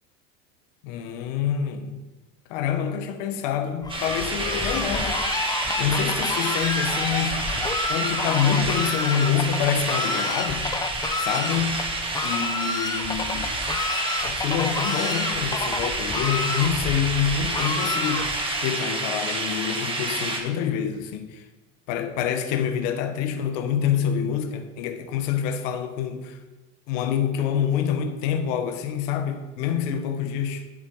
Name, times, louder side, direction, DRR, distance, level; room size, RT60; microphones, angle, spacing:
voice 1, 0.8-2.0 2.5-7.6 7.9-10.7 11.2-12.0 12.2-13.5 14.2-21.4 21.9-26.4 26.9-30.6, left 8 dB, 65° left, 1.3 m, -27 dB
Fowl, 3.8-18.6, left 3 dB, 10° left, 0.7 m, -30 dB
sound 1, 3.9-20.4, right 2 dB, 15° right, 1.6 m, -29 dB
11.5 x 6.9 x 4.8 m
supercardioid pair, 125°, 41 cm